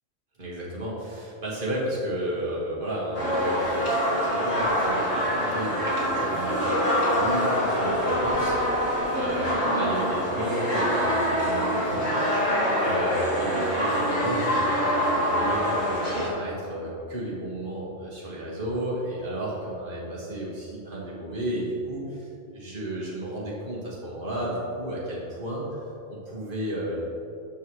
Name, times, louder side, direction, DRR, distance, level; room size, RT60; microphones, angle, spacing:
voice 1, 0.4-3.7 4.2-27.0, right 1 dB, 45° right, -5 dB, 1.9 m, -33 dB
sound 1, 3.1-16.3, equal, 65° left, 2.0 m, -25 dB
13.0 x 4.7 x 3.1 m, 2.6 s
omnidirectional pair, 1.3 m